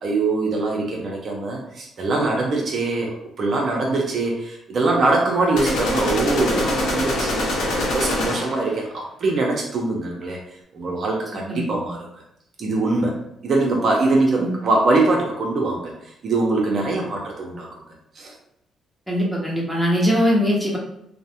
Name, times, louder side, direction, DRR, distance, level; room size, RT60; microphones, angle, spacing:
voice 1, 0.0-7.5 7.8-10.4 10.7-12.1 12.6-15.9 16.2-17.7 18.2-18.3, right 2 dB, 55° right, -1 dB, 0.6 m, -22 dB
sound 1, 5.6-8.7, left 1 dB, 85° left, 0.7 m, -24 dB
voice 2, 19.1-20.8, equal, ahead, -4 dB, 0.8 m, -21 dB
2.4 x 2.0 x 2.7 m, 0.80 s
cardioid pair, 90°, 0 cm